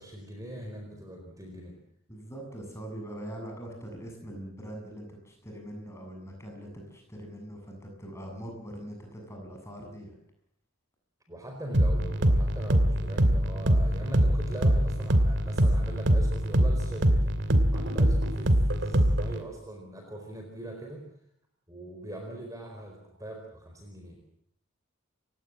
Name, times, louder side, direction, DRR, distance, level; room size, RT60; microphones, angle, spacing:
voice 1, 0.0-1.8 11.3-17.3 17.7-21.0 21.7-24.2, right 1 dB, 15° right, 2 dB, 4.4 m, -41 dB
voice 2, 2.1-10.1, right 1 dB, 15° left, 2 dB, 7.6 m, -42 dB
sound 1, 11.7-19.4, equal, 55° right, 2.6 m, -23 dB
30.0 x 17.0 x 7.5 m, 0.68 s
head